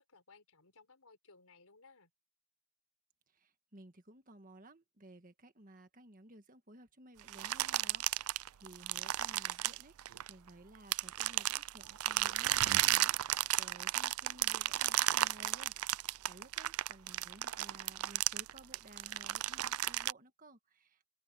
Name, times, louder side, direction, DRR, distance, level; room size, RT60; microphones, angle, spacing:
voice 1, 0.0-2.1, left 4 dB, 90° left, 4.9 m, -62 dB
voice 2, 3.3-15.7 16.2-21.1, right 1 dB, 40° right, 1.7 m, -57 dB
sound 1, 7.3-10.5 10.9-20.1, right 14 dB, 80° right, 0.4 m, -33 dB
open air
head